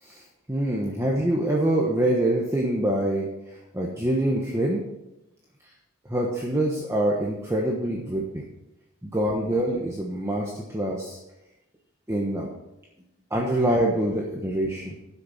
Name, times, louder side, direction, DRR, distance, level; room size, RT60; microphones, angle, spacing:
voice 1, 0.0-4.8 6.1-8.4 9.0-11.2 12.1-12.5 13.3-15.0, right 1 dB, 10° right, -2 dB, 1.1 m, -25 dB
12.0 x 6.8 x 5.7 m, 0.91 s
head